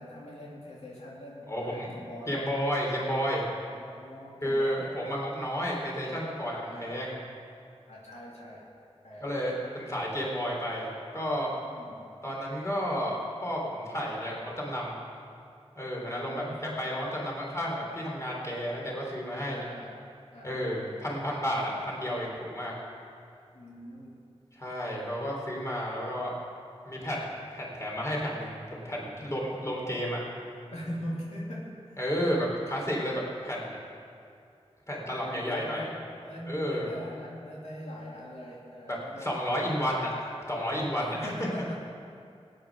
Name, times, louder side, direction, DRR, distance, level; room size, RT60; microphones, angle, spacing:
voice 1, 0.0-2.5 3.7-4.9 6.7-7.1 7.9-8.7 9.0-9.3 11.7-12.0 16.1-16.6 19.5-20.0 20.3-20.6 23.5-24.2 30.7-31.7 35.2-39.7 41.0-41.9, equal, 85° left, -5 dB, 2.8 m, -41 dB
voice 2, 1.5-1.9 2.3-3.4 4.4-7.1 9.2-11.5 12.2-14.9 15.8-16.4 16.8-19.6 20.4-22.7 24.5-26.3 26.9-30.2 32.0-33.8 34.9-35.8 36.5-36.9 38.9-41.3, equal, 25° left, -3 dB, 3.7 m, -32 dB
18.5 x 9.4 x 6.2 m, 2.4 s
wide cardioid pair, 75°, 11 cm